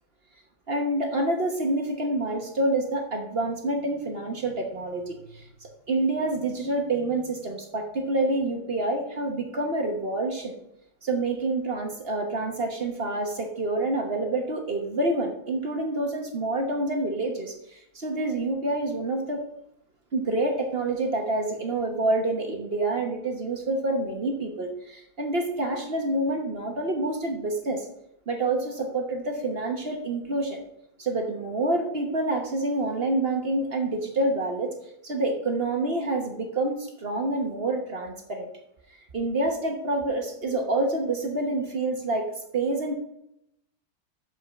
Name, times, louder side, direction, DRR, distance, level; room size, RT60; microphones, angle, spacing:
voice 1, 0.7-10.5 11.0-19.4 20.1-27.8 28.3-30.6 31.0-34.7 35.0-38.5 39.1-42.9, right 2 dB, 40° right, 3 dB, 1.0 m, -27 dB
7.0 x 5.4 x 5.9 m, 0.78 s
omnidirectional pair, 2.2 m